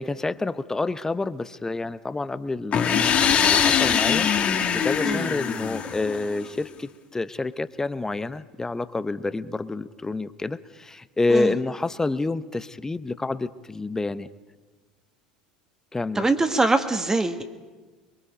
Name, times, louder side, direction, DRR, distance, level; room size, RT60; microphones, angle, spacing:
voice 1, 0.0-4.3 4.7-14.3 15.9-16.2, left 3 dB, 15° left, 15 dB, 0.8 m, -28 dB
sound 1, 2.7-6.5, left 7 dB, 35° left, 1.8 m, -22 dB
voice 2, 16.1-17.4, right 2 dB, 15° right, 7 dB, 1.5 m, -23 dB
24.0 x 22.5 x 5.2 m, 1.3 s
figure-of-eight pair, 75°, 4 cm